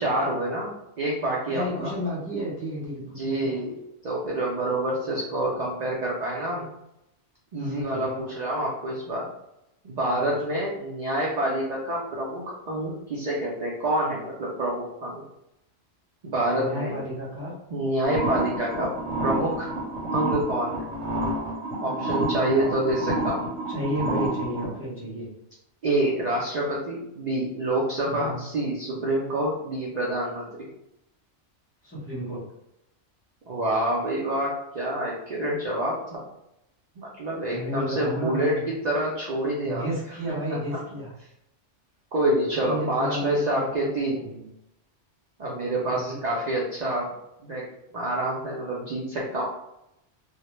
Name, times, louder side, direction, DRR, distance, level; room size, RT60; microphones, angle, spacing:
voice 1, 0.0-1.9 3.1-3.7 4.0-6.7 7.5-9.3 9.8-15.2 16.2-16.9 17.7-18.9 19.2-19.7 20.1-20.8 21.8-23.4 25.8-30.7 33.5-36.2 37.0-39.8 42.1-44.2 45.4-47.1 47.4-49.4, right 1 dB, 60° right, -4 dB, 0.4 m, -27 dB
voice 2, 1.5-3.3 7.6-8.2 10.1-10.6 16.6-17.5 21.8-22.7 23.7-25.3 28.1-28.4 31.8-32.4 37.5-38.6 39.6-41.1 42.6-44.5 45.9-46.2, equal, 15° left, -8 dB, 0.6 m, -33 dB
sound 1, 18.0-24.7, right 1 dB, 85° right, 0.9 m, -29 dB
2.1 x 2.0 x 2.9 m, 0.84 s
omnidirectional pair, 1.2 m